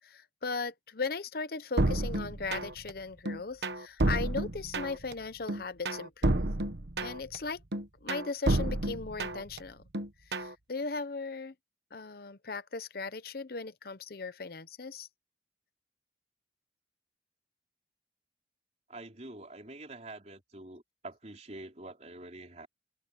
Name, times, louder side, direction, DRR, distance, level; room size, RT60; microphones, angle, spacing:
voice 1, 0.0-6.5 7.0-7.6 8.0-9.8 10.3-11.5 11.9-15.1, left 4 dB, 60° left, 0.8 m, -37 dB
sound 1, 1.8-2.9 3.3-5.1 5.5-7.4 7.7-9.6 9.9-10.5, right 1 dB, 75° right, 1.3 m, -30 dB
voice 2, 18.9-22.7, right 2 dB, 40° right, 3.7 m, -46 dB
head